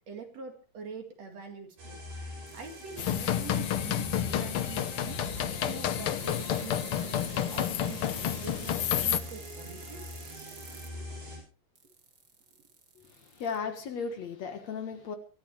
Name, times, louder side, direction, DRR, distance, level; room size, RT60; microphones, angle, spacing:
voice 1, 0.1-5.3 5.6-10.1 10.8-11.2, right 5 dB, 55° right, 5 dB, 2.9 m, -46 dB
sound 1, 1.8-11.4, equal, 75° right, 9.3 m, -43 dB
sound 2, 2.5-4.5 6.2-10.9 11.8-13.6, right 5 dB, 35° right, 2.0 m, -51 dB
sound 3, 3.0-9.2, left 10 dB, 80° left, 1.2 m, -30 dB
voice 2, 13.0-15.2, left 5 dB, 60° left, 7 dB, 2.4 m, -36 dB
24.0 x 13.5 x 3.2 m, 0.36 s
omnidirectional pair, 3.9 m